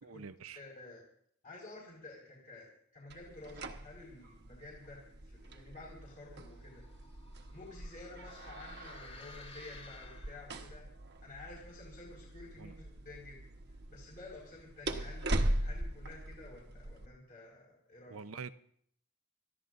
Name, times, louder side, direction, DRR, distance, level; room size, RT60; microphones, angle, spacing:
voice 1, 0.0-0.6 12.6-12.7 18.1-18.6, right 5 dB, 80° right, 0.7 m, -46 dB
voice 2, 0.6-1.0 1.4-6.8 7.5-10.9 11.2-13.4 13.7-18.4, left 2 dB, 45° left, 5.1 m, -51 dB
sound 1, 3.1-17.1, right 1 dB, 55° right, 1.2 m, -41 dB
sound 2, 6.2-10.7, left 3 dB, 25° left, 1.6 m, -54 dB
28.5 x 15.0 x 2.6 m
head